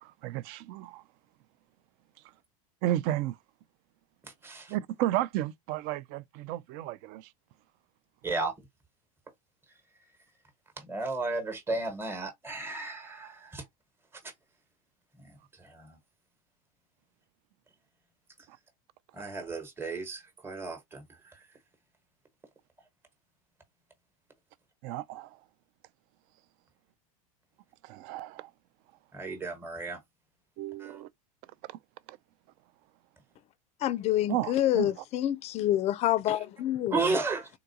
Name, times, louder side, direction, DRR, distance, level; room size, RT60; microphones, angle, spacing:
voice 1, 0.0-1.0 2.8-3.4 4.7-7.3 24.8-25.3 27.8-28.5 30.6-31.1 32.1-32.2 34.3-34.9, right 13 dB, 55° right, 0.4 m, -33 dB
voice 2, 4.4-4.7 8.2-8.5 10.8-13.6 15.2-16.0 19.1-21.0 29.1-30.0 30.8-31.0 36.9-37.5, right 3 dB, 10° right, 1.1 m, -34 dB
voice 3, 33.8-37.1, left 13 dB, 35° left, 0.4 m, -27 dB
3.7 x 2.3 x 2.7 m
hypercardioid pair, 105°, 18 cm